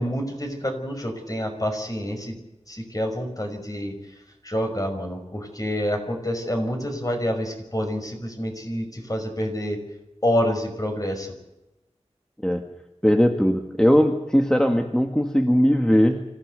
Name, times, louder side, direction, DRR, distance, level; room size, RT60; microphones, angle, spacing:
voice 1, 0.0-2.4 2.7-9.8 10.2-11.3, equal, 30° left, 4 dB, 5.7 m, -28 dB
voice 2, 13.0-16.2, equal, 5° left, 4 dB, 1.8 m, -19 dB
26.5 x 16.0 x 8.1 m, 0.94 s
wide cardioid pair, 55°, 12 cm